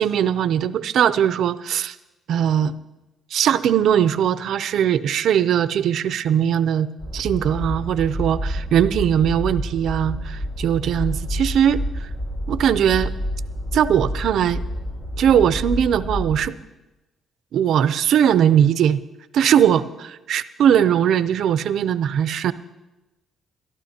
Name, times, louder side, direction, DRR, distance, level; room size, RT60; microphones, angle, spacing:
voice 1, 0.0-1.9 2.3-2.7 3.3-6.9 7.1-11.8 12.5-13.1 13.7-14.6 15.2-16.5 17.5-19.0 19.3-22.5, right 9 dB, 75° right, 14 dB, 0.5 m, -20 dB
sound 1, 7.0-16.4, equal, 65° left, 4.9 m, -29 dB
21.5 x 12.0 x 2.8 m, 1.0 s
cardioid pair, 90°, 0 cm